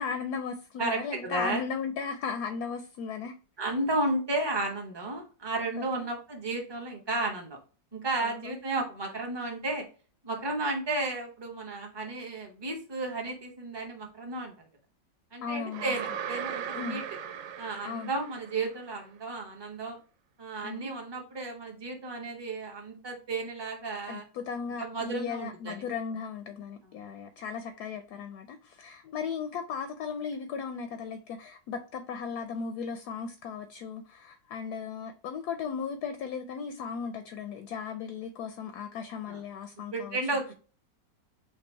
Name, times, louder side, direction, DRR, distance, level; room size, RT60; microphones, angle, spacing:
voice 1, 0.0-3.3 5.8-6.1 8.2-8.6 15.4-15.9 16.7-17.0 17.8-18.1 20.6-20.9 24.1-40.2, left 6 dB, 70° left, 8 dB, 1.0 m, -36 dB
voice 2, 0.8-1.6 3.6-7.6 7.9-9.8 10.2-14.5 15.3-17.0 17.6-20.0 20.4-24.2 24.8-25.8 26.8-27.0 39.3-39.4 39.9-40.5, right 2 dB, 20° right, 1 dB, 0.8 m, -33 dB
sound 1, 15.7-18.8, right 8 dB, 70° right, 0.8 m, -38 dB
5.3 x 2.3 x 4.3 m, 0.36 s
omnidirectional pair, 2.0 m